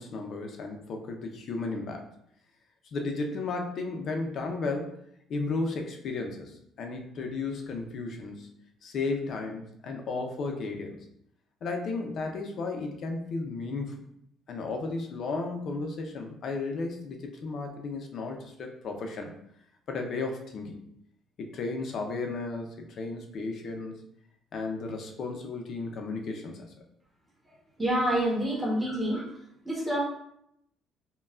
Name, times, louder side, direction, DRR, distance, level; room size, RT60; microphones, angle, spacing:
voice 1, 0.0-2.1 2.9-5.0 5.3-8.5 8.8-11.0 11.6-14.0 14.5-19.3 19.9-20.8 21.4-23.9 24.5-26.7, left 3 dB, 45° left, 3 dB, 0.6 m, -34 dB
voice 2, 27.8-29.3 29.6-30.0, right 1 dB, 5° right, -5 dB, 1.0 m, -27 dB
5.4 x 2.3 x 2.4 m, 0.73 s
cardioid pair, 155°, 0 cm